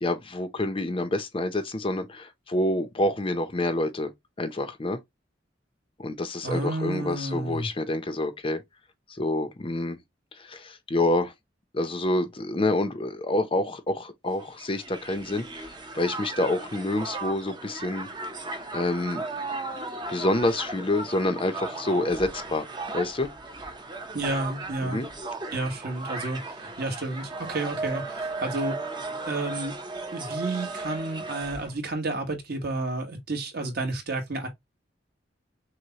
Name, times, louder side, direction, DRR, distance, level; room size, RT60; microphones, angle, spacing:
voice 1, 0.0-4.1 4.4-5.0 6.0-8.6 9.1-10.0 10.4-11.3 11.7-18.1 18.7-19.2 20.1-22.7 22.9-23.3 24.8-25.1, left 1 dB, 30° left, 0.6 m, -27 dB
voice 2, 6.4-7.7 24.1-25.0 25.5-28.8 29.3-29.7 30.1-34.5, right 2 dB, 55° right, 1.3 m, -31 dB
Crowd, 14.4-31.8, right 3 dB, 25° right, 0.7 m, -36 dB
6.2 x 2.2 x 2.8 m
head